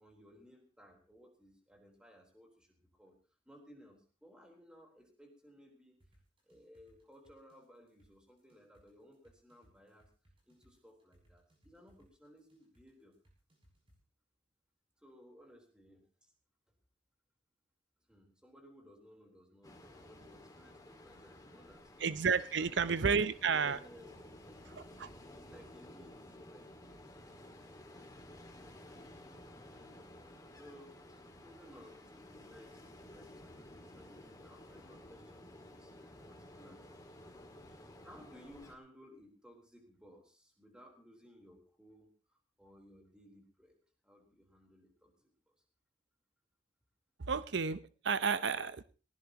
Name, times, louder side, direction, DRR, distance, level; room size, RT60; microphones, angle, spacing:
voice 1, 0.0-3.2 3.5-6.0 6.5-10.1 10.5-13.1 15.0-16.3 18.1-21.9 22.5-23.0 23.4-32.8 33.1-37.0 37.2-37.3 37.7-45.5, equal, 5° right, 1 dB, 3.8 m, -60 dB
sound 1, 6.0-14.0, equal, 30° right, 6.7 m, -68 dB
Ocean, 19.6-38.8, left 1 dB, 20° left, 2.0 m, -54 dB
voice 2, 22.0-23.8 24.8-25.1 47.3-48.8, right 5 dB, 65° right, 14 dB, 0.7 m, -32 dB
19.5 x 19.5 x 2.9 m, 0.35 s
head